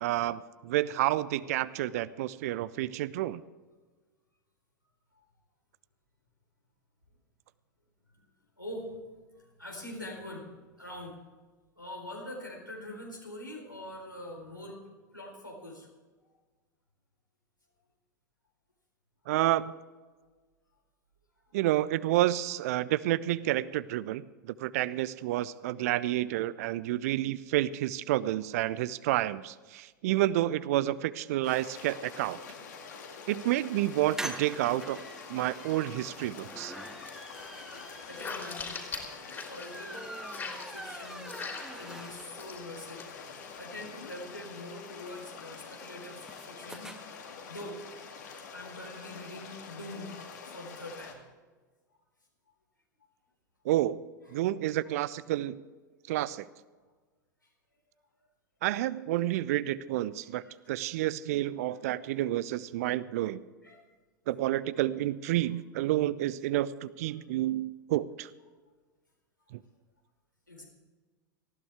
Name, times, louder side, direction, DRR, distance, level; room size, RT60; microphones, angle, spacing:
voice 1, 0.0-3.4 19.3-19.7 21.5-32.4 33.3-35.0 35.3-36.7 53.6-54.0 54.3-55.6 56.1-56.5 58.6-63.4 64.3-68.3 69.5-69.6, right 14 dB, 50° right, 18 dB, 0.5 m, -29 dB
voice 2, 8.6-10.5 10.8-11.2 11.8-14.8 15.1-15.9 38.0-40.1 40.7-41.4 41.7-43.1 43.5-46.9 47.5-47.8 48.5-51.2 54.2-54.4 60.2-60.8 61.6-61.8 63.6-63.8 64.9-65.0 67.1-67.2 70.5-70.6, left 1 dB, 90° left, -1 dB, 4.1 m, -44 dB
sound 1, 31.4-51.1, left 5 dB, 60° left, 2.3 m, -46 dB
sound 2, 33.9-42.5 42.9-43.0 43.2-43.3 43.6-47.0, right 1 dB, 5° right, 1.6 m, -44 dB
sound 3, 36.1-36.5 36.8-40.0 40.3-42.0 42.3-42.6 43.0-43.7, left 4 dB, 20° left, 3.1 m, -42 dB
19.0 x 14.5 x 3.5 m, 1.3 s
figure-of-eight pair, 85°, 10 cm